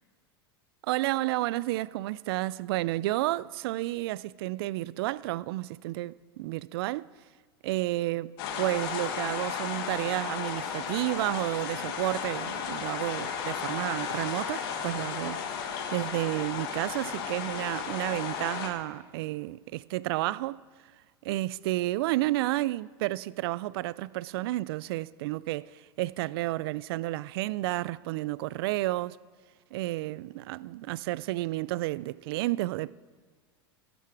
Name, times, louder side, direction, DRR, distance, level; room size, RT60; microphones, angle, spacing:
voice 1, 0.8-7.1 7.6-20.6 21.2-29.2 29.7-32.9, right 17 dB, 65° right, 0.4 m, -31 dB
sound 1, 8.4-18.7, left 7 dB, 65° left, 2.0 m, -34 dB
15.0 x 12.5 x 4.7 m
hypercardioid pair, 105°, 14 cm